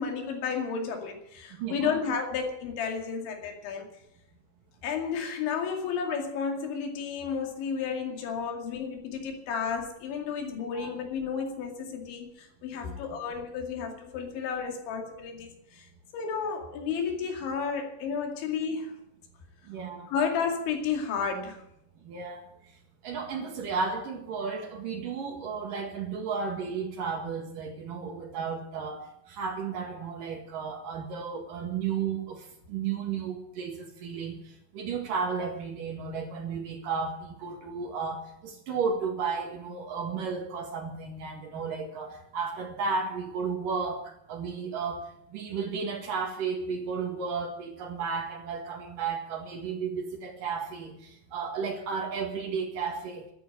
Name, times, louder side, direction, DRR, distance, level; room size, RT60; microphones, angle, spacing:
voice 1, 0.0-3.9 4.8-15.9 16.1-18.9 20.1-21.6, left 6 dB, 75° left, 3 dB, 4.7 m, -32 dB
voice 2, 1.6-2.0 10.7-10.9 12.8-13.0 19.7-20.1 22.0-22.4 23.0-34.4 34.7-45.0 45.3-53.3, right 5 dB, 55° right, 3 dB, 2.9 m, -33 dB
12.5 x 10.5 x 9.9 m, 0.78 s
omnidirectional pair, 5.4 m